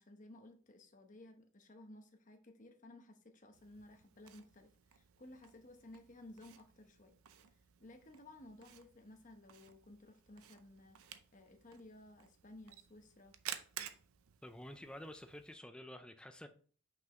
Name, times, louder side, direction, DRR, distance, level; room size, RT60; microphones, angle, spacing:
voice 1, 0.0-7.1 7.8-13.4, left 1 dB, 35° left, 1.0 m, -57 dB
Camera, 3.5-15.5, right 10 dB, 85° right, 0.6 m, -54 dB
voice 2, 14.4-16.5, left 1 dB, 5° left, 0.5 m, -50 dB
5.9 x 5.4 x 3.0 m
head